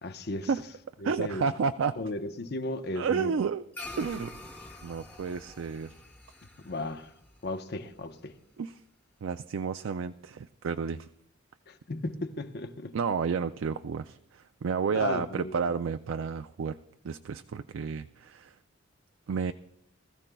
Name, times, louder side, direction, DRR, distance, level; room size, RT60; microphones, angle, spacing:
voice 1, 0.0-0.5 1.0-1.4 2.0-3.3 6.6-7.1 7.4-8.4 11.7-13.0 14.9-15.7, left 2 dB, 55° left, 0.8 m, -35 dB
voice 2, 1.0-2.0 3.0-3.6 4.0-4.4 4.8-6.0 8.6-8.8 9.2-11.1 12.9-16.8 17.0-18.6 19.3-19.5, right 5 dB, 75° right, 0.4 m, -31 dB
sound 1, 3.7-8.4, left 2 dB, 10° left, 1.1 m, -46 dB
20.5 x 14.0 x 2.3 m
head